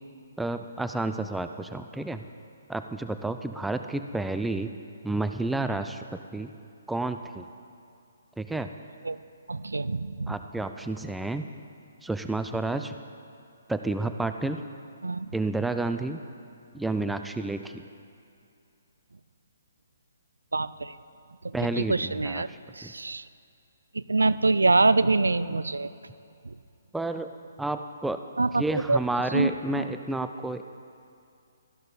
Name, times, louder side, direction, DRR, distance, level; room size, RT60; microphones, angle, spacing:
voice 1, 0.4-2.3 2.7-4.7 5.0-6.5 6.9-7.5 8.4-8.7 10.3-11.5 12.0-12.9 13.7-14.6 15.3-16.2 16.7-17.8 21.5-22.9 26.9-27.3 27.6-28.2 28.6-30.6, right 2 dB, 5° right, 8 dB, 0.3 m, -30 dB
voice 2, 9.5-10.3 15.0-15.3 20.5-20.9 21.4-21.5 21.9-22.5 22.8-23.2 23.9-25.9 28.4-29.0 29.3-29.5 29.7-29.8, right 3 dB, 75° right, 15 dB, 0.4 m, -24 dB
13.5 x 11.5 x 4.0 m, 2.5 s
figure-of-eight pair, 130°, 0 cm